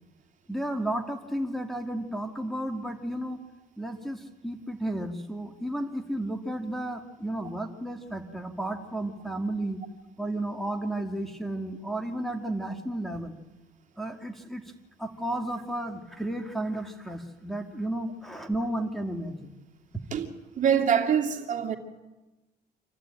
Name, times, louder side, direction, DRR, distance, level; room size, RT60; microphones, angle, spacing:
voice 1, 0.5-3.4 3.8-9.8 10.2-13.4 14.0-14.6 15.0-19.5, right 1 dB, ahead, 2.0 m, -33 dB
voice 2, 20.6-21.8, right 8 dB, 50° right, 2.6 m, -24 dB
26.5 x 15.0 x 8.9 m
cardioid pair, 110°, 17 cm